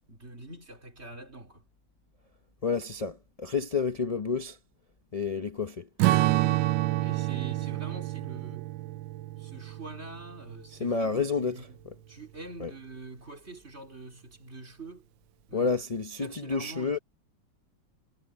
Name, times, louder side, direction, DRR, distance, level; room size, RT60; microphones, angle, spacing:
voice 1, 0.1-1.7 6.3-8.7 9.3-15.1 15.5-17.0, right 2 dB, 35° right, 3.5 m, -45 dB
voice 2, 2.6-4.6 5.1-5.9 10.8-11.6 12.6-12.7 15.5-17.0, left 4 dB, 40° left, 0.5 m, -29 dB
Strum, 6.0-10.7, right 17 dB, 80° right, 1.3 m, -28 dB
omnidirectional pair, 2.1 m